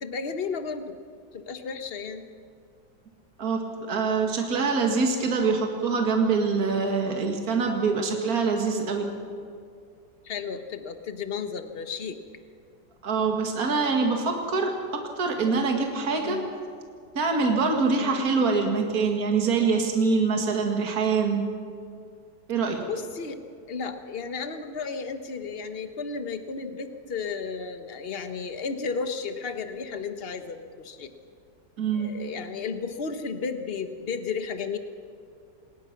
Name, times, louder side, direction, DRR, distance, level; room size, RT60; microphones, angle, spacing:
voice 1, 0.0-1.0 1.3-2.3 10.2-12.2 16.2-16.5 17.9-18.2 22.9-23.4 23.7-31.1 31.9-34.8, left 5 dB, 35° left, 8 dB, 1.3 m, -33 dB
voice 2, 3.4-9.1 13.0-16.4 17.2-21.4 22.5-22.8 31.8-32.1, right 4 dB, 55° right, 2 dB, 2.4 m, -24 dB
26.5 x 20.5 x 6.0 m, 2.3 s
omnidirectional pair, 1.9 m